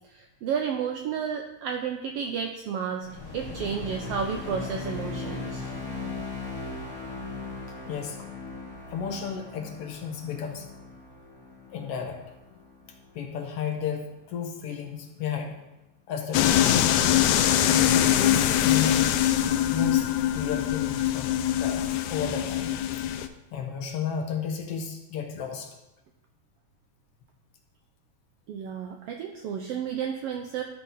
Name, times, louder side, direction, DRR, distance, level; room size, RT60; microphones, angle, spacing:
voice 1, 0.1-3.1 3.3-5.7 28.5-30.6, right 7 dB, 90° right, 3 dB, 1.3 m, -32 dB
sound 1, 3.0-13.5, left 3 dB, 50° left, 2.4 m, -38 dB
voice 2, 7.9-8.3 8.9-10.7 11.7-12.2 12.5-12.6 13.1-15.6 16.1-16.9 17.9-19.1 19.5-23.1 23.5-25.7, left 7 dB, 70° left, 3 dB, 1.5 m, -33 dB
sound 2, 16.3-23.3, left 11 dB, 90° left, 2.0 m, -23 dB
12.5 x 4.6 x 4.1 m, 0.96 s
omnidirectional pair, 3.3 m